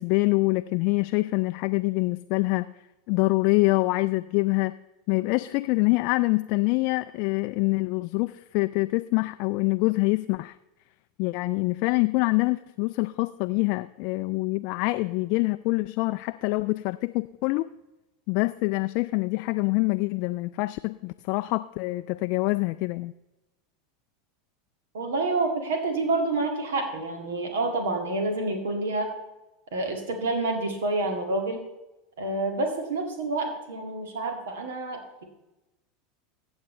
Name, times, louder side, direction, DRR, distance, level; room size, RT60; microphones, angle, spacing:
voice 1, 0.0-2.7 3.1-4.7 5.1-10.5 11.2-17.7 18.3-23.1, left 23 dB, 55° left, 11 dB, 0.3 m, -25 dB
voice 2, 24.9-29.1 29.7-31.6 32.2-35.2, right 2 dB, 70° right, 4 dB, 2.2 m, -28 dB
14.5 x 8.0 x 3.2 m, 0.98 s
figure-of-eight pair, 80°, 0 cm